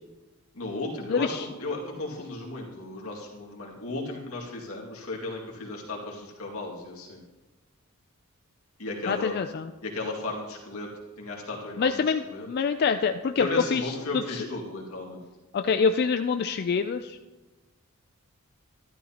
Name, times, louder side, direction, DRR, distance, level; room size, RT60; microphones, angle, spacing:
voice 1, 0.5-1.3 1.6-7.2 8.8-9.4 9.8-10.9 11.2-12.5 13.4-15.2, left 2 dB, 85° left, -2 dB, 2.2 m, -35 dB
voice 2, 1.1-1.5 9.1-9.7 11.8-14.5 15.5-17.2, left 5 dB, 50° left, 8 dB, 0.3 m, -26 dB
12.0 x 12.0 x 2.9 m, 1.2 s
head